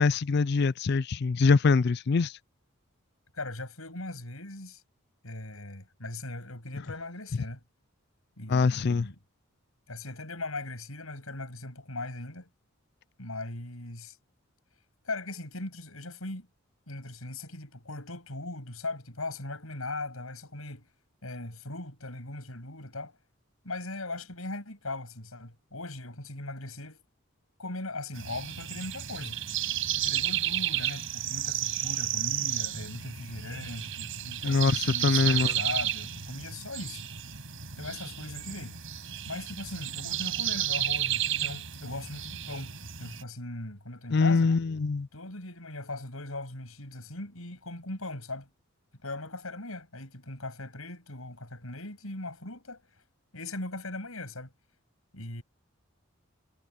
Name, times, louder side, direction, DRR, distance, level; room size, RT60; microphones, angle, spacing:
voice 1, 0.0-2.3 8.5-9.1 34.4-35.5 44.1-45.1, left 4 dB, 50° left, 0.4 m, -24 dB
voice 2, 3.3-4.8 5.2-7.6 8.4-9.2 9.9-12.5 13.2-14.2 15.1-16.5 16.9-20.8 21.2-23.1 23.6-27.0 27.6-37.0 37.8-38.8 39.3-44.5 45.1-48.5 49.0-52.8 53.3-54.5 55.1-55.4, left 2 dB, 85° left, 7.3 m, -39 dB
sound 1, 28.1-43.2, right 12 dB, 70° right, 5.1 m, -32 dB
head